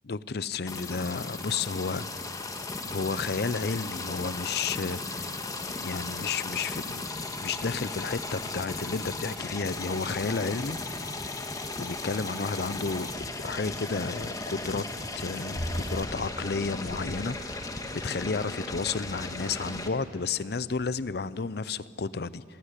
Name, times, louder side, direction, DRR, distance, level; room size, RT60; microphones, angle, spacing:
voice 1, 0.1-2.1 2.4-2.5 2.8-5.3 5.8-7.1 7.4-10.8 11.8-13.1 13.4-14.8 15.1-22.4, left 4 dB, 65° left, 18 dB, 0.6 m, -32 dB
sound 1, 0.7-19.9, left 2 dB, 20° left, 1.5 m, -36 dB
sound 2, 12.8-13.3 15.5-17.5 18.4-18.9 19.7-19.9 20.8-21.2, equal, 45° left, 7.4 m, -39 dB
27.0 x 16.5 x 10.0 m, 2.6 s
head